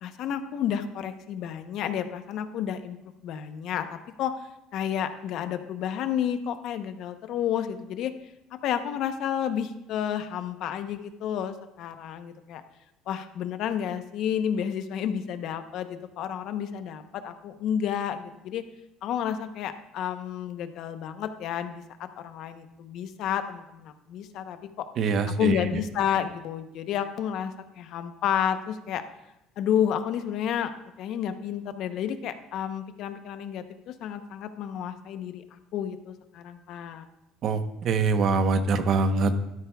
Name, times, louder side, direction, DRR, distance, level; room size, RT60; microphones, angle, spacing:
voice 1, 0.0-3.0 3.2-4.3 4.7-8.1 8.6-12.6 13.1-18.6 19.0-24.9 25.3-29.0 29.6-30.7 31.0-37.0, left 9 dB, 60° left, 9 dB, 0.8 m, -31 dB
voice 2, 25.0-25.6 37.4-39.3, right 4 dB, 50° right, 8 dB, 0.9 m, -24 dB
12.5 x 11.5 x 2.3 m, 0.89 s
cardioid pair, 130°, 0 cm